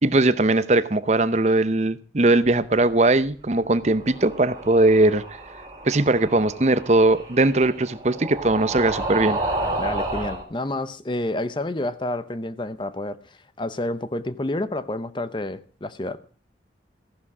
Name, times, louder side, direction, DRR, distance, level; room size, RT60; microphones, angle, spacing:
voice 1, 0.0-5.2 5.9-9.4, right 2 dB, 40° right, 0.7 m, -20 dB
sound 1, 3.7-10.4, right 2 dB, 20° right, 3.1 m, -31 dB
voice 2, 9.8-13.2 13.6-16.2, left 1 dB, 25° left, 0.7 m, -29 dB
15.0 x 11.5 x 4.8 m
head